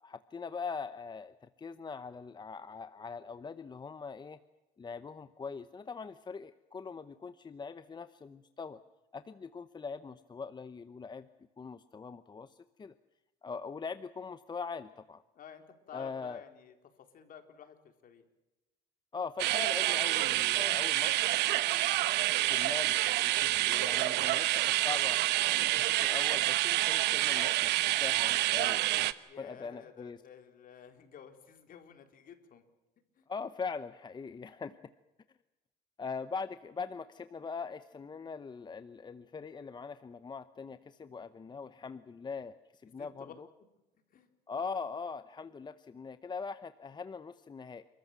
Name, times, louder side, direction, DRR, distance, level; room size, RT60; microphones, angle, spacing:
voice 1, 0.0-4.4 4.8-8.8 9.1-11.3 11.6-12.9 13.4-15.2 15.9-16.4 19.1-21.3 22.4-25.2 25.7-28.8 29.4-30.2 33.3-34.8 36.0-43.5 44.5-47.9, left 5 dB, 25° left, 12 dB, 0.9 m, -42 dB
voice 2, 15.4-16.7 17.1-17.8 18.0-18.2 29.3-32.6 33.2-33.3 43.0-43.3 44.1-44.3, left 8 dB, 55° left, 7 dB, 4.0 m, -52 dB
sound 1, 19.4-29.1, right 16 dB, 85° right, 1.1 m, -28 dB
30.0 x 14.0 x 9.0 m, 1.0 s
cardioid pair, 110°, 17 cm